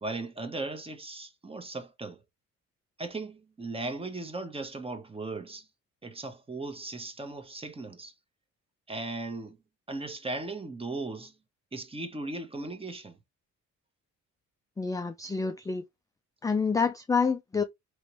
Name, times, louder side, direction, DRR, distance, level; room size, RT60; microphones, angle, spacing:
voice 1, 0.0-2.2 3.0-5.7 6.0-8.1 8.9-9.6 9.9-11.3 11.7-13.2, right 2 dB, 20° right, 0.9 m, -37 dB
voice 2, 14.8-15.8 16.4-17.6, left 5 dB, 10° left, 0.3 m, -27 dB
3.2 x 3.0 x 2.9 m
cardioid pair, 90°, 30 cm